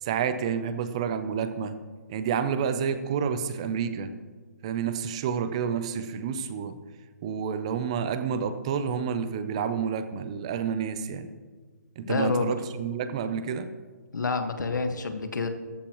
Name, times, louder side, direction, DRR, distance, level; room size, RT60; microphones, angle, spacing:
voice 1, 0.0-1.8 2.1-4.1 4.6-6.8 7.2-11.3 12.0-13.7, right 7 dB, 20° right, 11 dB, 0.5 m, -29 dB
voice 2, 12.0-12.6 14.1-15.5, left 3 dB, 85° left, 7 dB, 1.6 m, -28 dB
15.5 x 14.5 x 3.1 m, 1.5 s
hypercardioid pair, 170°, 10 cm